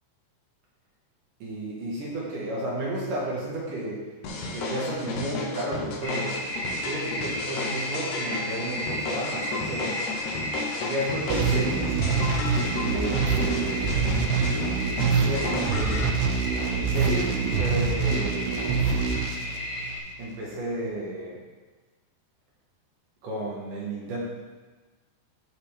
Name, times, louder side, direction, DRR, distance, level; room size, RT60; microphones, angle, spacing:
voice 1, 1.4-4.1 4.5-6.5 6.8-10.1 10.8-12.0 12.7-14.0 15.2-16.2 16.7-18.5 20.2-21.4 23.2-24.2, right 1 dB, 60° right, -5 dB, 2.7 m, -32 dB
sound 1, 4.2-16.1, left 3 dB, 75° left, 1.8 m, -34 dB
sound 2, 6.0-20.0, equal, 60° left, 3.7 m, -34 dB
sound 3, 11.3-20.2, right 5 dB, 75° right, 2.7 m, -26 dB
15.0 x 5.5 x 3.5 m, 1.3 s
omnidirectional pair, 5.0 m